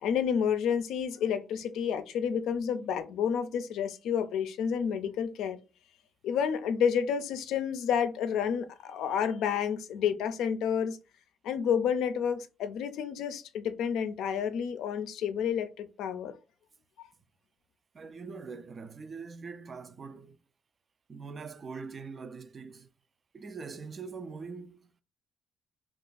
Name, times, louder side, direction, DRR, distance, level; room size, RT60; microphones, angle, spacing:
voice 1, 0.0-5.6 6.2-11.0 11.4-16.3 17.0-17.1, left 7 dB, 85° left, 0.4 m, -30 dB
voice 2, 17.9-20.4 21.1-22.9 23.3-24.9, right 5 dB, 40° right, 0.3 m, -43 dB
2.4 x 2.4 x 3.9 m
cardioid pair, 90°, 0 cm